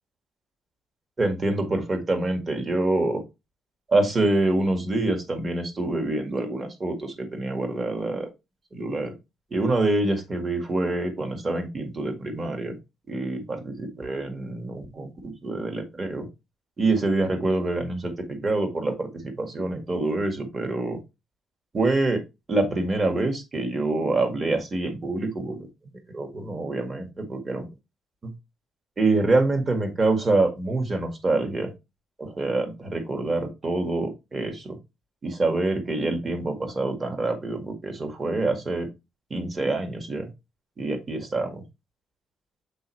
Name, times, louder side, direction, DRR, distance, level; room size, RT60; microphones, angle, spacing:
voice 1, 1.2-3.2 3.9-8.3 8.7-9.1 9.5-12.8 13.1-16.3 16.8-21.0 21.7-22.2 22.5-25.7 26.1-27.7 28.2-28.3 29.0-31.7 32.2-34.8 35.2-38.9 39.3-40.3 40.8-41.6, right 2 dB, 35° right, 5 dB, 1.8 m, -26 dB
7.8 x 3.9 x 3.2 m, 0.24 s
cardioid pair, 90°, 0 cm